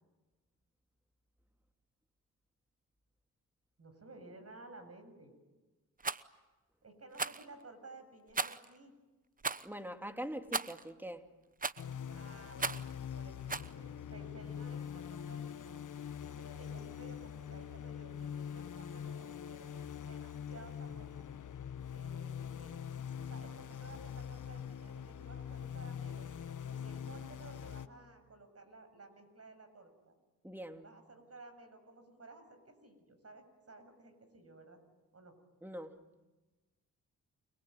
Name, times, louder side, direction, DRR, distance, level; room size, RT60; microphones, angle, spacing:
voice 1, 3.8-5.3 6.8-8.9 12.1-12.7 13.1-13.4 13.7-15.7 16.4-21.3 21.9-22.8 23.2-26.3 26.7-30.2 30.8-34.8 35.1-35.4, right 2 dB, 40° right, 7.1 m, -55 dB
Rattle, 6.0-6.2 7.1-7.5 8.3-8.7 9.4-9.7 10.5-10.8 11.6-11.9 12.6-12.9 13.5-13.7, right 4 dB, 20° right, 0.9 m, -36 dB
voice 2, 9.6-11.3 30.4-30.9 35.6-36.0, equal, 5° right, 2.8 m, -43 dB
The journey, 11.8-27.9, left 8 dB, 55° left, 1.5 m, -43 dB
29.5 x 21.0 x 9.2 m
supercardioid pair, 55°, 37 cm